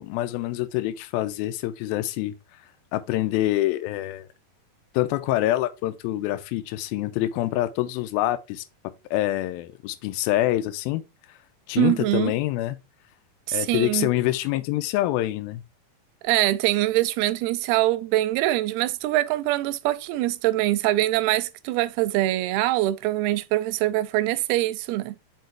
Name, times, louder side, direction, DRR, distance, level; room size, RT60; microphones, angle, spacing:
voice 1, 0.0-2.3 2.9-4.3 4.9-8.6 9.1-11.0 11.7-12.8 13.5-15.6, left 15 dB, 85° left, 2.4 m, -26 dB
voice 2, 11.8-12.3 13.5-14.1 16.2-25.2, right 16 dB, 90° right, 2.5 m, -23 dB
6.0 x 4.6 x 4.4 m
omnidirectional pair, 4.4 m